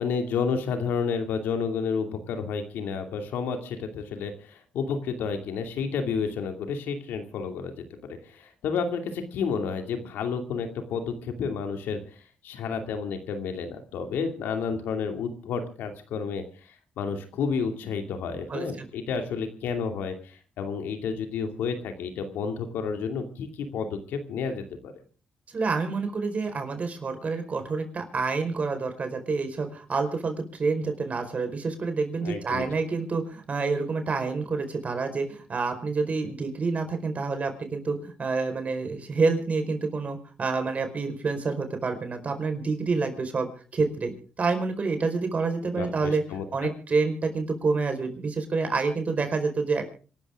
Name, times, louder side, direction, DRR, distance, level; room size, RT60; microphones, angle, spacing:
voice 1, 0.0-24.9 32.2-32.6 45.7-46.7, left 5 dB, 85° left, 6 dB, 2.6 m, -31 dB
voice 2, 18.5-18.9 25.5-44.1 44.4-46.2 46.5-49.8, right 4 dB, 45° right, 7 dB, 4.8 m, -28 dB
26.5 x 13.0 x 3.7 m, 0.39 s
cardioid pair, 70°, 3 cm